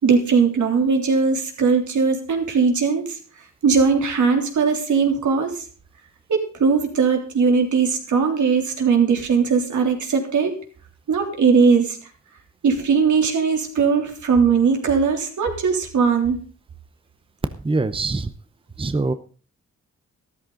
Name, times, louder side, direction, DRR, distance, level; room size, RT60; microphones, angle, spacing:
voice 1, 0.0-3.2 3.6-5.6 6.3-10.6 11.1-12.0 12.6-16.4, right 5 dB, 80° right, 3 dB, 3.4 m, -19 dB
voice 2, 17.6-18.3 18.8-19.1, right 3 dB, 20° right, 11 dB, 0.8 m, -23 dB
13.0 x 13.0 x 3.9 m, 0.39 s
cardioid pair, 90°, 29 cm